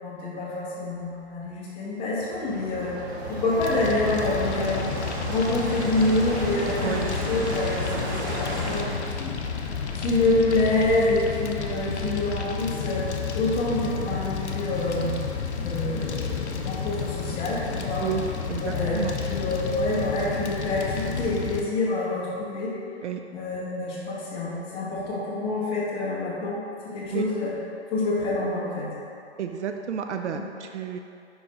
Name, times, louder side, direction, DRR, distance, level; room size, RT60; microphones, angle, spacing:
voice 1, 0.0-2.9 3.3-4.9 5.3-9.4 9.6-13.0 13.3-15.1 15.6-18.0 18.6-22.7 23.3-27.5 27.9-28.9 30.3-30.4, left 2 dB, 15° left, -7 dB, 1.0 m, -27 dB
sound 1, 2.0-8.8, right 1 dB, 20° right, 0.5 m, -34 dB
Fire, 3.6-21.6, left 6 dB, 75° left, 0.7 m, -31 dB
voice 2, 6.8-7.1 18.0-18.2 18.5-19.2 23.0-23.2 27.1-27.2 29.4-31.0, right 8 dB, 80° right, 5 dB, 0.5 m, -31 dB
5.1 x 4.5 x 4.1 m, 2.7 s
hypercardioid pair, 140°, 34 cm